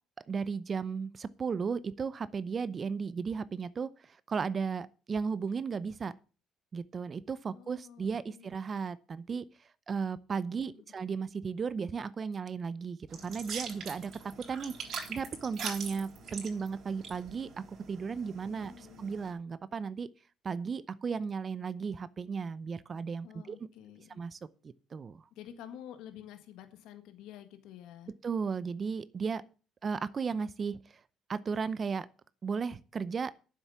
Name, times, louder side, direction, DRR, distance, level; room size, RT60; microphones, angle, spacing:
voice 1, 0.3-6.1 6.7-9.5 9.9-20.1 20.4-23.7 24.2-24.4 24.6-25.2 28.2-29.4 29.8-30.8 31.3-32.1 32.4-33.3, right 5 dB, 40° right, 0.7 m, -35 dB
voice 2, 7.5-8.5 10.7-10.9 18.5-19.0 23.2-24.2 25.3-28.1, left 10 dB, 75° left, 1.7 m, -50 dB
sound 1, 13.1-19.3, right 6 dB, 55° right, 3.7 m, -43 dB
9.6 x 7.4 x 6.9 m
supercardioid pair, 80°, 0 cm